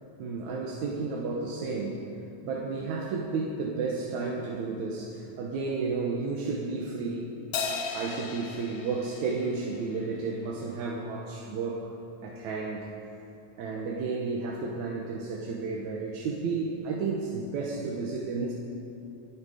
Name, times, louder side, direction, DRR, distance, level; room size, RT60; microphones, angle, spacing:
voice 1, 0.2-2.1 2.4-7.3 7.9-11.9 12.2-12.9 13.6-18.5, right 4 dB, 75° right, -2 dB, 2.4 m, -32 dB
Crash cymbal, 7.5-10.2, left 5 dB, 65° left, 1.9 m, -36 dB
24.0 x 8.2 x 5.0 m, 2.8 s
omnidirectional pair, 3.4 m